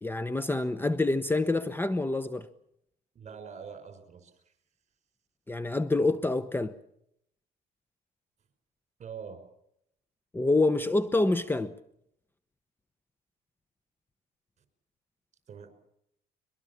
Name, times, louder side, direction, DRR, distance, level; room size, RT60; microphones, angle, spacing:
voice 1, 0.0-2.5 5.5-6.7 10.3-11.7, left 2 dB, 10° left, 0.9 m, -27 dB
voice 2, 3.1-4.5 9.0-9.4 15.5-15.7, right 6 dB, 45° right, 5.5 m, -44 dB
23.0 x 22.5 x 7.2 m
cardioid pair, 110°, 17 cm